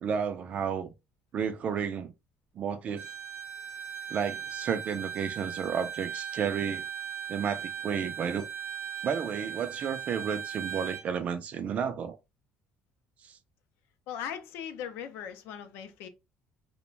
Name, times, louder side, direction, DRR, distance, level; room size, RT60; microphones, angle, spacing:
voice 1, 0.0-0.9 1.3-2.1 2.5-3.0 4.1-6.8 7.3-8.5 9.0-12.2 13.2-13.4, right 7 dB, 35° right, 0.3 m, -32 dB
Bowed string instrument, 3.0-11.1, right 8 dB, 60° right, 0.7 m, -38 dB
voice 2, 14.1-16.1, left 8 dB, 70° left, 0.5 m, -39 dB
2.4 x 2.1 x 3.0 m
cardioid pair, 165°, 4 cm